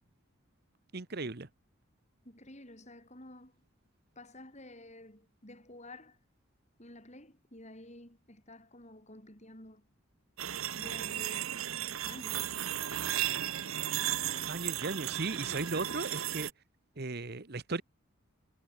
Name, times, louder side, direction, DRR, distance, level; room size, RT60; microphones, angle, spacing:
voice 1, 0.9-1.5 14.5-16.5 17.0-17.8, right 3 dB, 50° right, 1.2 m, -36 dB
voice 2, 2.3-3.5 4.2-6.2 6.8-9.9 10.4-11.6 12.0-12.5 14.3-15.0, left 1 dB, 35° left, 7.1 m, -51 dB
sound 1, 10.4-16.5, right 11 dB, 75° right, 1.0 m, -35 dB
head